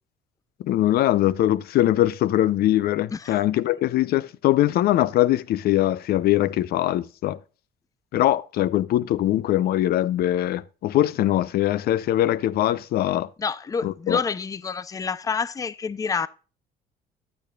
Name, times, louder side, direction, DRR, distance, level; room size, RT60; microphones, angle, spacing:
voice 1, 0.6-7.4 8.1-13.3 13.8-14.2, left 13 dB, 65° left, 0.6 m, -22 dB
voice 2, 13.4-16.3, left 5 dB, 20° left, 0.5 m, -28 dB
10.5 x 9.1 x 2.3 m
cardioid pair, 110°, 17 cm